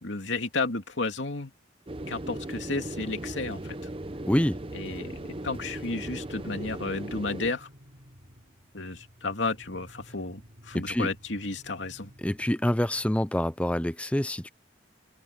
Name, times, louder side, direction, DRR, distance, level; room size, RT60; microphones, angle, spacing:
voice 1, 0.0-1.5 2.1-3.8 4.7-7.7 8.7-12.1, left 3 dB, 80° left, 2.7 m, -32 dB
sound 1, 1.9-7.5, right 1 dB, 30° right, 0.7 m, -37 dB
voice 2, 4.3-4.6 10.7-11.1 12.2-14.5, left 1 dB, 5° left, 0.5 m, -26 dB
sound 2, 5.2-13.1, equal, 55° right, 6.5 m, -53 dB
open air
head